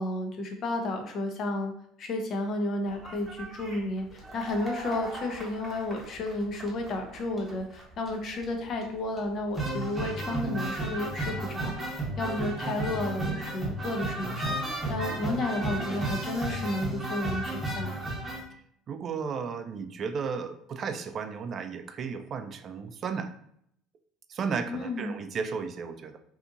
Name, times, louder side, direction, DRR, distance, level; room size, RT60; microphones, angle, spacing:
voice 1, 0.0-1.7 2.0-17.9 24.7-25.2, left 2 dB, 50° left, 4 dB, 0.6 m, -32 dB
sound 1, 2.9-18.4, right 2 dB, 15° right, 1.0 m, -34 dB
voice 2, 18.9-23.3 24.3-26.2, right 5 dB, 45° right, 8 dB, 0.3 m, -34 dB
2.7 x 2.4 x 2.5 m, 0.70 s
supercardioid pair, 90°, 0 cm